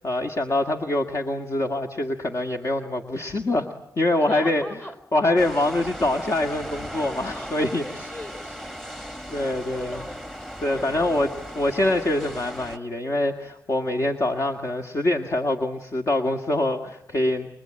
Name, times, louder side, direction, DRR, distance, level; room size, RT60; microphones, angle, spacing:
voice 1, 0.0-3.7 4.0-4.6 5.1-7.8 8.9-10.0 10.6-11.3 11.6-17.5, left 1 dB, 50° left, 5 dB, 1.9 m, -24 dB
voice 2, 4.2-4.9 7.2-10.4 10.8-11.2, left 1 dB, 35° left, 9 dB, 4.5 m, -40 dB
sound 1, 5.4-12.8, equal, 5° left, 1.4 m, -37 dB
29.0 x 22.0 x 8.9 m, 0.85 s
cardioid pair, 60°, 6 cm